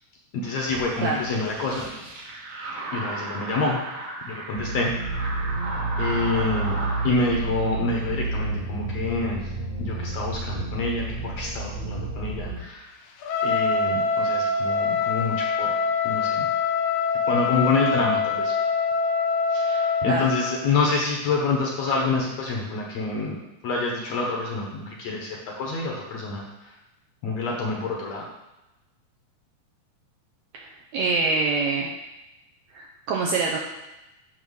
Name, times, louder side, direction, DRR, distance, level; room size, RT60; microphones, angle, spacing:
voice 1, 0.3-1.9 2.9-3.8 4.3-4.9 6.0-6.8 7.0-9.5 9.8-12.9 13.4-15.8 16.0-16.5 17.3-18.5 19.5-23.4 23.6-26.7 27.2-28.3, left 3 dB, 65° left, -1 dB, 1.8 m, -27 dB
sound 1, 0.7-7.1, right 2 dB, 60° right, 2.1 m, -35 dB
sound 2, 4.6-12.6, right 3 dB, 25° right, 0.8 m, -30 dB
Trumpet, 13.2-20.6, left 5 dB, 85° left, 1.4 m, -24 dB
voice 2, 30.5-31.9 32.7-33.6, right 4 dB, 75° right, -1 dB, 1.7 m, -25 dB
8.9 x 3.0 x 6.2 m, 0.98 s
omnidirectional pair, 3.9 m